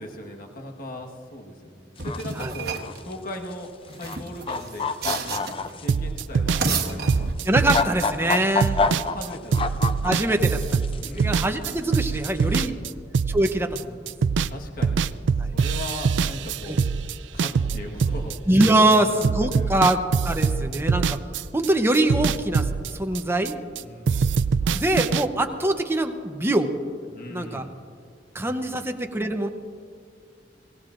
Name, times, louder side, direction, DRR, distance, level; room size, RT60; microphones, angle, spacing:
voice 1, 0.0-3.7 4.0-7.4 8.2-8.3 8.9-10.1 10.9-11.7 12.4-13.1 14.5-15.1 15.5-16.8 17.3-18.4 18.8-19.9 23.7-24.3 24.6-24.9 27.1-27.7 28.3-29.0, left 1 dB, 55° left, 1 dB, 1.4 m, -39 dB
sound 1, 2.0-2.3 2.7-3.1 3.9-4.2 4.5-5.8 6.7-6.8 7.5-10.4 10.6-11.2 12.2-12.4, left 4 dB, 30° left, 0.4 m, -26 dB
sound 2, 2.0-3.0 3.9-5.7 6.4-7.7, right 4 dB, 60° right, 1.2 m, -30 dB
sound 3, 5.9-14.5 14.8-19.0 19.2-23.8 24.1-25.2, right 5 dB, 90° right, 0.4 m, -24 dB
voice 2, 7.5-8.8 10.0-12.7 13.3-14.1 15.4-15.5 16.7-16.8 18.5-20.0 20.2-21.2 21.5-23.6 24.7-26.7 27.3-27.6 28.3-29.5, right 1 dB, 15° right, 5 dB, 0.8 m, -23 dB
24.5 x 17.5 x 2.5 m, 2.2 s
head